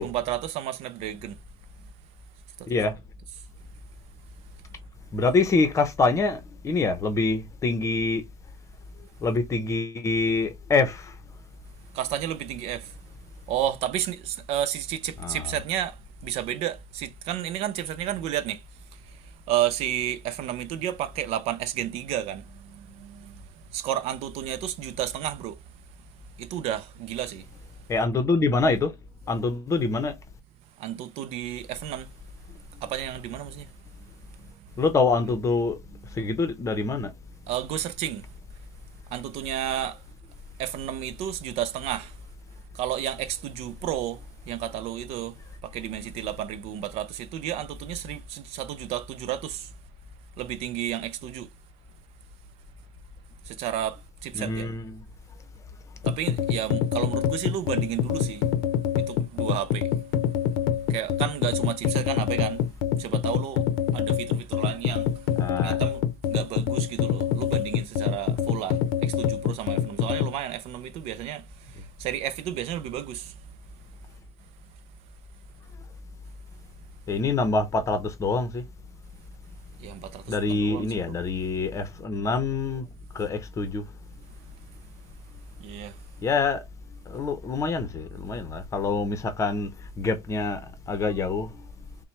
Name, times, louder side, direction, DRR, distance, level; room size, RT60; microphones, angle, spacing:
voice 1, 0.0-1.4 11.9-12.9 13.5-16.0 16.2-18.6 19.5-23.3 23.7-25.6 26.4-27.4 30.8-32.1 32.8-33.7 37.5-38.2 39.1-40.0 40.6-42.1 42.7-44.2 44.5-45.3 45.6-49.7 50.4-51.5 53.5-54.7 56.1-58.4 59.1-59.9 60.9-62.6 63.0-63.6 63.9-65.1 65.6-66.0 66.3-71.4 72.0-73.3 79.8-81.2 85.6-85.9, right 11 dB, 50° right, 0.5 m, -31 dB
voice 2, 5.1-8.2 9.2-11.1 15.2-15.4 27.9-29.0 29.3-30.1 34.8-35.8 36.1-37.1 54.3-55.0 65.4-65.8 77.1-78.6 80.3-82.9 83.1-83.8 86.2-86.6 87.1-89.7 90.0-90.6 90.9-91.7, left 3 dB, 25° left, 0.7 m, -25 dB
sound 1, 56.0-70.3, left 9 dB, 70° left, 0.7 m, -26 dB
5.7 x 2.2 x 3.2 m
supercardioid pair, 135°, 13 cm